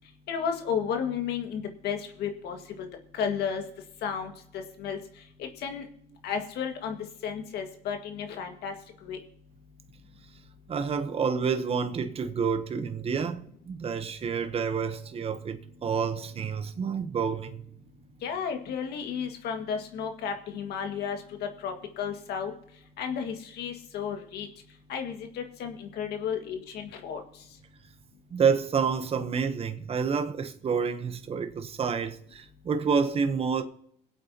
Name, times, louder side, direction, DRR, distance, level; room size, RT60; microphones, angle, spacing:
voice 1, 0.3-2.9 3.1-3.6 4.0-4.3 4.8-5.0 5.4-5.9 6.2-7.0 7.2-8.7 9.0-9.2 18.2-21.2 21.6-22.5 23.0-24.5 24.9-27.2, left 7 dB, 75° left, 1.9 m, -33 dB
voice 2, 10.7-17.6 28.3-33.6, right 6 dB, 35° right, 1.0 m, -28 dB
22.5 x 8.2 x 2.9 m
cardioid pair, 110°, 17 cm